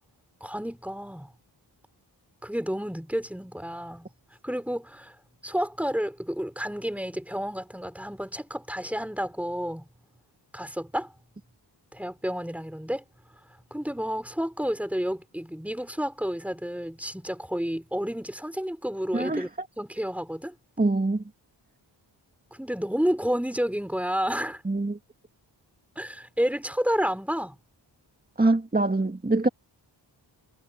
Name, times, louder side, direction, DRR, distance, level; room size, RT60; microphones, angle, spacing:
voice 1, 0.4-1.3 2.4-4.1 4.4-5.2 5.4-9.9 10.5-11.1 11.9-13.0 13.7-19.5 19.8-20.6 22.5-24.6 26.0-27.6, equal, 5° right, 5.6 m, -30 dB
voice 2, 19.1-19.5 20.8-21.2 24.7-25.0 28.4-29.5, right 2 dB, 20° right, 2.2 m, -24 dB
cardioid pair, 55°, 45 cm